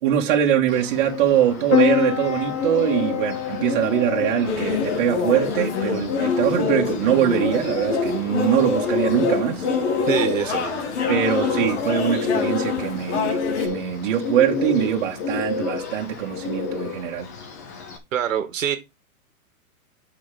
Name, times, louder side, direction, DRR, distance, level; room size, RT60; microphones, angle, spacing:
voice 1, 0.0-9.7 11.1-17.3, right 10 dB, 35° right, 2.2 m, -22 dB
Bird, 0.7-18.0, left 4 dB, 15° left, 0.5 m, -29 dB
Piano, 1.7-16.7, left 11 dB, 70° left, 2.5 m, -31 dB
sound 1, 4.5-13.7, left 5 dB, 50° left, 2.5 m, -27 dB
voice 2, 10.1-10.8 18.1-18.8, right 9 dB, 60° right, 2.0 m, -24 dB
7.0 x 5.9 x 5.2 m
hypercardioid pair, 160°, 42 cm